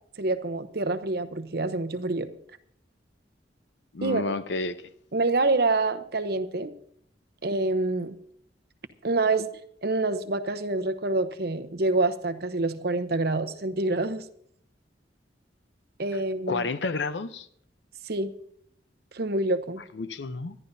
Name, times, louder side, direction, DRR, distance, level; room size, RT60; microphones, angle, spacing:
voice 1, 0.2-2.3 4.0-4.3 5.1-6.7 7.4-8.2 9.0-9.5 9.8-14.2 16.0-16.7 18.1-18.3 19.1-19.8, right 2 dB, 60° right, 0.9 m, -26 dB
voice 2, 3.9-4.8 16.5-17.5 19.9-20.6, left 3 dB, 80° left, 0.7 m, -30 dB
25.0 x 11.0 x 2.7 m
head